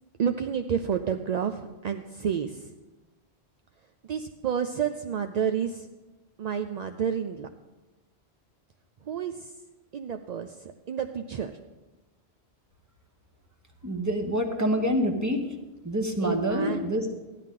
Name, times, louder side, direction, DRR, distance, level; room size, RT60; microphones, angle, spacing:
voice 1, 0.2-2.7 4.1-5.9 6.4-7.5 9.0-9.5 9.9-11.5 16.2-16.9, right 7 dB, 55° right, 7 dB, 0.4 m, -30 dB
voice 2, 13.8-15.4 15.8-17.0, equal, 15° right, 4 dB, 1.1 m, -26 dB
14.5 x 11.0 x 3.7 m, 1.1 s
omnidirectional pair, 1.1 m